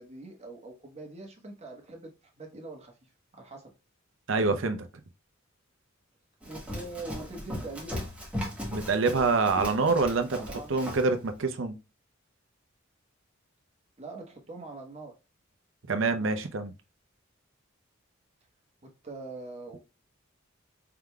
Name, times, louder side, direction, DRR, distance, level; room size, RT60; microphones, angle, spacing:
voice 1, 0.0-2.9 3.3-3.7 6.4-8.0 10.3-10.7 14.0-15.2 16.1-16.4 18.8-19.8, right 2 dB, 30° right, 1.2 m, -43 dB
voice 2, 4.3-4.9 8.7-10.4 10.7-11.8 15.9-16.7, right 4 dB, 65° right, 0.7 m, -26 dB
Run, 6.4-11.1, left 1 dB, 5° right, 1.5 m, -38 dB
4.7 x 3.7 x 2.2 m
head